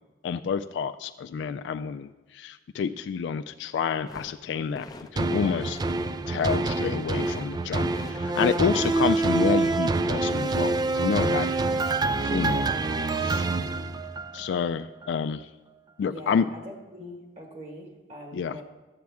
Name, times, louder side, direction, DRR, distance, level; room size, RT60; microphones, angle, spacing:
voice 1, 0.2-4.9 5.1-5.8 6.3-11.5 12.2-12.6 13.2-13.5 14.3-15.5 16.0-16.4 18.3-18.6, left 6 dB, 80° left, 9 dB, 0.3 m, -29 dB
sound 1, 4.1-5.1 5.4-6.0 6.2-7.5 7.8-8.2 8.6-9.7, left 2 dB, 20° left, 0.6 m, -44 dB
sound 2, 5.2-14.5 15.0-15.1, right 3 dB, 25° right, 0.3 m, -26 dB
voice 2, 11.2-11.6 11.9-12.8 13.3-13.9 16.1-18.6, equal, 40° right, 1 dB, 1.6 m, -44 dB
13.0 x 7.5 x 3.5 m, 1.2 s
head